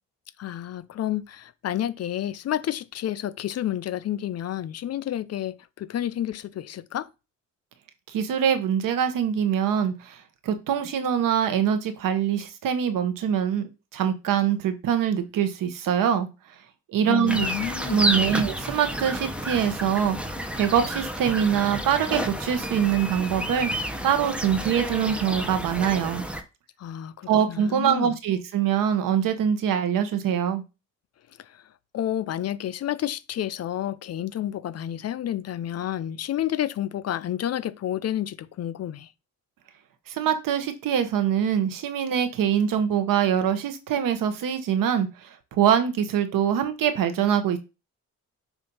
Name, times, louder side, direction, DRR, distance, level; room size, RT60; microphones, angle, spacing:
voice 1, 0.4-7.1 17.1-18.2 26.8-28.2 31.4-31.6 31.9-39.1, left 11 dB, 50° left, 0.5 m, -30 dB
voice 2, 8.1-10.2 10.4-16.3 16.9-17.5 17.9-20.2 20.6-23.7 24.0-26.2 27.3-30.6 40.1-47.6, right 8 dB, 85° right, 1.0 m, -24 dB
sound 1, 17.3-26.4, equal, 5° right, 0.8 m, -30 dB
7.1 x 2.6 x 5.4 m
cardioid pair, 110°, 32 cm